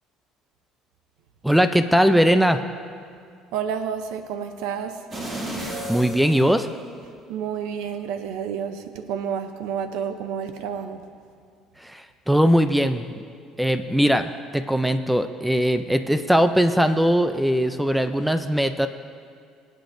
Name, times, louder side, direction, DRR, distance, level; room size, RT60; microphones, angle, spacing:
voice 1, 1.4-2.6 5.6-6.7 11.8-13.1 13.6-18.9, equal, 5° right, 9 dB, 0.4 m, -20 dB
voice 2, 3.5-5.0 7.3-11.0, right 7 dB, 90° right, 8 dB, 0.6 m, -30 dB
sound 1, 5.1-7.2 7.7-7.8, right 1 dB, 35° right, 2.6 m, -33 dB
24.0 x 8.5 x 2.6 m, 2.2 s
cardioid pair, 125°, 0 cm